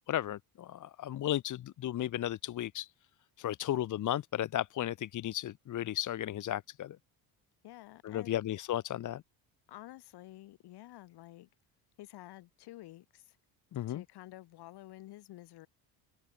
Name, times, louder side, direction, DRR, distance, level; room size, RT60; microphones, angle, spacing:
voice 1, 0.0-2.9 3.4-7.0 8.0-9.2 13.7-14.0, left 12 dB, 50° left, 1.0 m, -34 dB
voice 2, 7.6-8.4 9.7-11.5 12.0-13.4 13.9-15.7, left 16 dB, 75° left, 7.4 m, -50 dB
cardioid pair, 105°, 40 cm